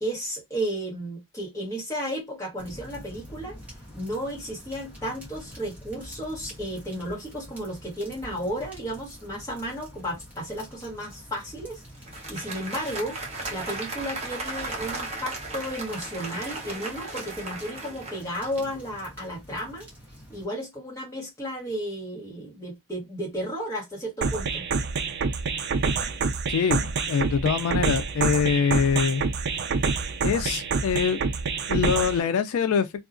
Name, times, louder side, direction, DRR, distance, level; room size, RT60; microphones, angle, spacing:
voice 1, 0.0-3.6 3.9-11.8 12.3-13.2 13.5-19.8 20.3-24.6, equal, 15° left, 1.3 m, -33 dB
sound 1, 2.6-20.5, equal, 5° right, 0.9 m, -46 dB
Applause, 11.9-18.9, right 2 dB, 30° right, 0.8 m, -36 dB
sound 2, 24.2-32.2, right 5 dB, 50° right, 0.3 m, -27 dB
voice 2, 26.5-29.2 30.2-31.2 31.7-32.9, left 6 dB, 85° left, 0.3 m, -24 dB
2.7 x 2.3 x 2.5 m
head